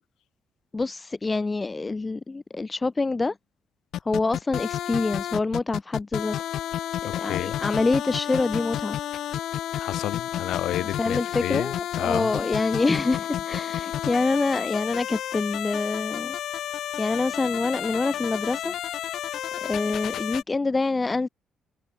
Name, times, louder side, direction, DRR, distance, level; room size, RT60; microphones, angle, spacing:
voice 1, 0.7-3.3 4.0-6.4 7.0-9.0 10.8-16.4 17.0-18.7 19.6-21.3, left 3 dB, 20° left, 1.2 m, -26 dB
sound 1, 3.9-20.4, left 11 dB, 70° left, 1.4 m, -31 dB
voice 2, 7.0-7.6 9.8-12.3, left 14 dB, 85° left, 6.4 m, -31 dB
cardioid pair, 140°, 0 cm